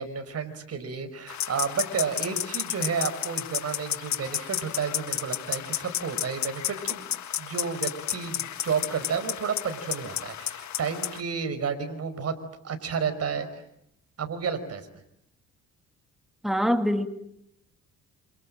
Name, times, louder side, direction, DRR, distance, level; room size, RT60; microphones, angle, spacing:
voice 1, 0.0-7.1 7.4-12.3 12.6-13.5 14.2-15.0, right 6 dB, 55° right, 9 dB, 5.3 m, -31 dB
sound 1, 1.3-11.2, left 11 dB, 65° left, 1.7 m, -32 dB
voice 2, 16.4-17.1, equal, ahead, 7 dB, 2.8 m, -24 dB
28.0 x 27.5 x 7.7 m, 0.75 s
cardioid pair, 90°, 30 cm